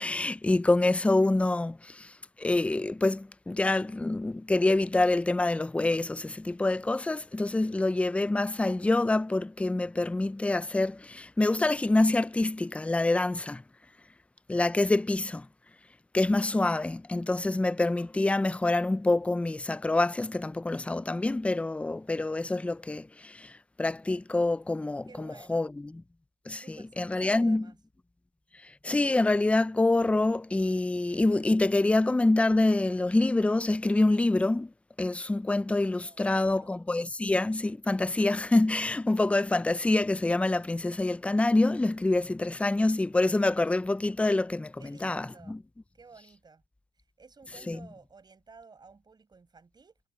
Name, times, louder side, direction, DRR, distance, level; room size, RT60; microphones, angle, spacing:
voice 1, 0.0-2.1 2.4-13.6 14.5-15.5 16.1-23.5 23.8-25.9 26.5-27.7 28.8-34.7 35.0-45.6 47.7-47.8, left 2 dB, 5° left, 0.5 m, -26 dB
voice 2, 25.1-25.6 26.5-27.8 36.0-36.8 44.8-45.6 45.9-46.6 47.2-50.0, right 4 dB, 25° right, 5.7 m, -53 dB
cardioid pair, 110°, 17 cm